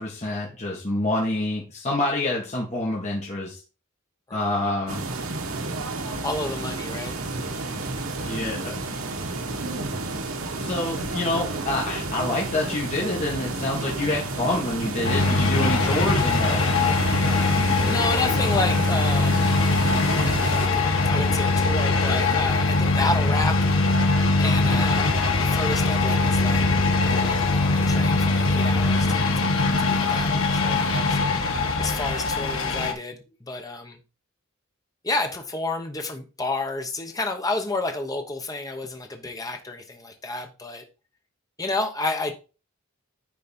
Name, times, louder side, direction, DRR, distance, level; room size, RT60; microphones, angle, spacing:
voice 1, 0.0-3.6 4.3-5.0 8.2-8.8 10.6-16.7, left 2 dB, 35° left, 1.8 m, -27 dB
voice 2, 4.3-4.6 6.2-7.2 7.5-7.8 17.8-19.5 20.5-23.6 23.9-25.1 25.4-26.6 27.0-29.5 29.8-34.0 35.0-40.8 41.6-42.3, left 2 dB, 15° left, 1.1 m, -31 dB
sound 1, 4.9-20.7, right 2 dB, 80° right, 1.3 m, -31 dB
sound 2, 15.0-32.9, left 3 dB, 70° left, 1.6 m, -22 dB
10.5 x 4.2 x 4.3 m
head